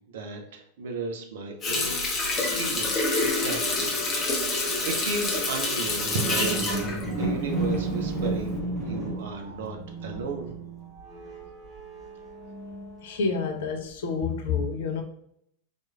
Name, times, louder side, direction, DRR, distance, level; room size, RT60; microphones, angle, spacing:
voice 1, 0.1-2.0 2.4-6.8 7.1-8.6 8.8-10.5, right 3 dB, 60° right, 0.7 m, -35 dB
Water tap faucet, 1.6-8.0 8.4-8.6, left 2 dB, 25° left, 1.0 m, -27 dB
sound 1, 5.9-13.3 13.9-14.0, right 2 dB, 5° right, 1.0 m, -33 dB
voice 2, 13.0-15.0, left 5 dB, 55° left, 0.6 m, -28 dB
4.2 x 3.1 x 2.3 m
figure-of-eight pair, 90°, 0 cm